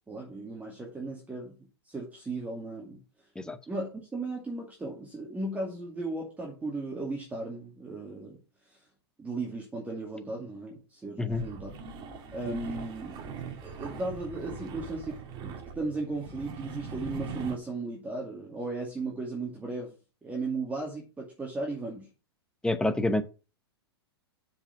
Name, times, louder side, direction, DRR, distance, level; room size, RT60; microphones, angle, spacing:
voice 1, 0.1-1.6 1.9-3.0 3.7-8.4 8.7-8.8 9.2-11.7 12.3-13.2 13.6-15.2 15.4-19.9 20.2-22.1, right 2 dB, 10° right, -2 dB, 2.4 m, -36 dB
sound 1, 11.3-17.6, right 5 dB, 35° right, 1.8 m, -41 dB
voice 2, 22.6-23.2, left 2 dB, 5° left, 10 dB, 0.9 m, -27 dB
7.0 x 5.2 x 7.3 m, 0.33 s
hypercardioid pair, 110°, 14 cm